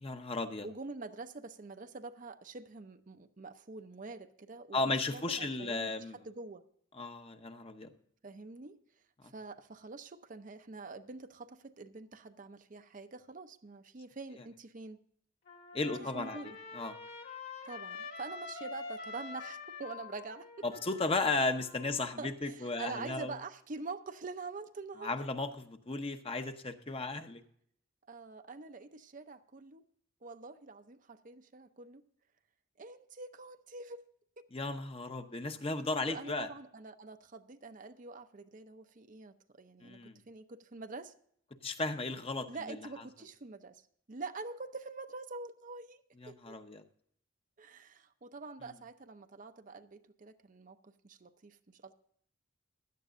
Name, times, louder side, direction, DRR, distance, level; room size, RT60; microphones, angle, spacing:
voice 1, 0.0-0.7 4.7-6.1 7.0-7.9 15.7-16.4 16.7-16.9 20.6-23.3 25.0-27.4 34.5-36.5 39.8-40.1 41.6-42.8 46.2-46.8, left 3 dB, 30° left, 7 dB, 0.9 m, -35 dB
voice 2, 0.6-6.6 8.2-8.8 9.2-15.0 16.0-16.6 17.6-20.5 22.2-25.1 28.1-29.8 30.2-32.0 32.8-34.0 36.0-40.0 40.3-41.1 42.5-43.8 44.1-46.0 46.3-46.6 47.6-51.9, right 3 dB, 40° right, 9 dB, 0.6 m, -46 dB
Trumpet, 15.5-22.1, left 4 dB, 50° left, 2.0 m, -46 dB
16.0 x 11.5 x 2.5 m, 0.65 s
head